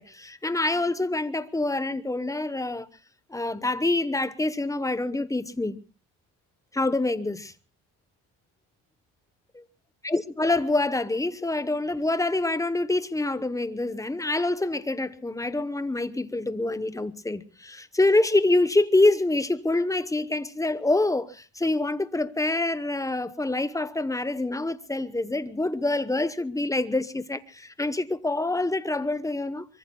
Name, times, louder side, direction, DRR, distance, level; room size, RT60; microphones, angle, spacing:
voice 1, 0.0-2.9 3.3-5.8 6.7-7.5 9.5-9.6 10.0-29.7, left 2 dB, 5° left, 0.9 m, -26 dB
24.5 x 23.5 x 2.2 m
cardioid pair, 115°, 49 cm